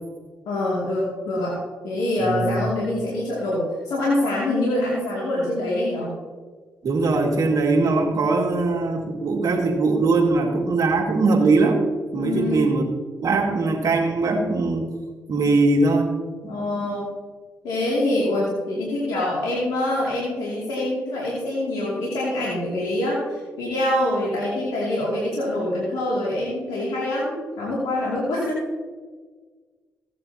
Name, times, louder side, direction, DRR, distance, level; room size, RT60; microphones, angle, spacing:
voice 1, 0.5-1.6 1.8-6.1 12.1-12.7 16.5-17.1 17.6-28.6, left 1 dB, 85° left, -7 dB, 2.5 m, -25 dB
voice 2, 2.2-2.7 6.8-11.8 12.1-12.8 13.2-14.9 15.3-16.1 16.4-16.9, right 3 dB, 60° right, 2 dB, 2.0 m, -21 dB
15.5 x 9.1 x 2.8 m, 1.5 s
supercardioid pair, 50°, 7 cm